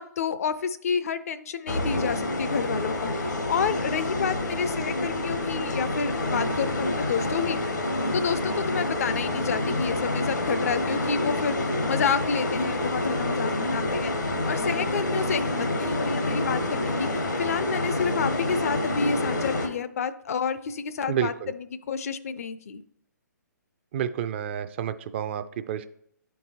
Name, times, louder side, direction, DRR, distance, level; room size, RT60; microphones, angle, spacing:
voice 1, 0.0-7.6 8.1-11.6 11.9-14.1 14.5-22.8, left 6 dB, 55° left, 13 dB, 0.4 m, -29 dB
sound 1, 1.7-19.7, left 1 dB, 80° left, 0.9 m, -28 dB
voice 2, 21.1-21.5 23.9-25.9, right 9 dB, 40° right, 12 dB, 0.4 m, -29 dB
10.5 x 4.6 x 2.8 m, 0.69 s
figure-of-eight pair, 130°, 10 cm